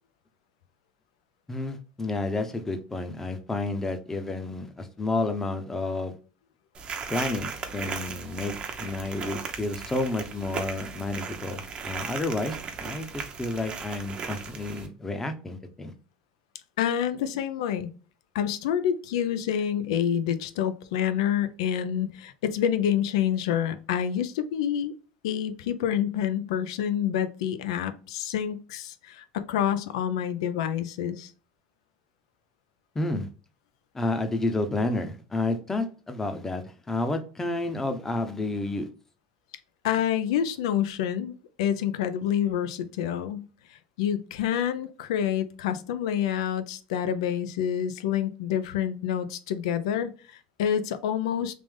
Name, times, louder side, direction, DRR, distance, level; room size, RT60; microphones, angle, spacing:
voice 1, 1.5-6.2 7.1-15.9 32.9-33.3 33.9-38.9, left 2 dB, 15° left, 0.7 m, -30 dB
sound 1, 6.7-14.9, right 5 dB, 35° right, 0.7 m, -37 dB
voice 2, 16.8-17.9 18.3-24.9 25.2-31.3 39.8-51.6, left 9 dB, 85° left, 0.5 m, -28 dB
3.4 x 2.6 x 3.5 m
supercardioid pair, 115°, 3 cm